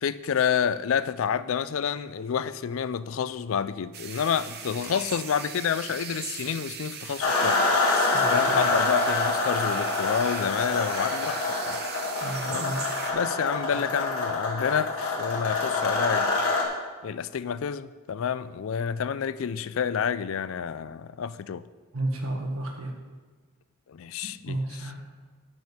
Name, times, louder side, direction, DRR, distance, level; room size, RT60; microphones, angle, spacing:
voice 1, 0.0-7.6 8.3-11.8 12.5-12.7 13.1-16.3 17.0-21.7 23.9-24.6, left 7 dB, 70° left, 0.4 m, -29 dB
sound 1, 3.9-13.1, right 7 dB, 50° right, 0.9 m, -39 dB
sound 2, 7.2-16.6, left 3 dB, 90° left, 1.9 m, -26 dB
voice 2, 8.1-8.7 12.2-12.8 21.9-22.9 24.5-25.0, right 1 dB, 80° right, 1.7 m, -32 dB
10.5 x 6.2 x 5.4 m
head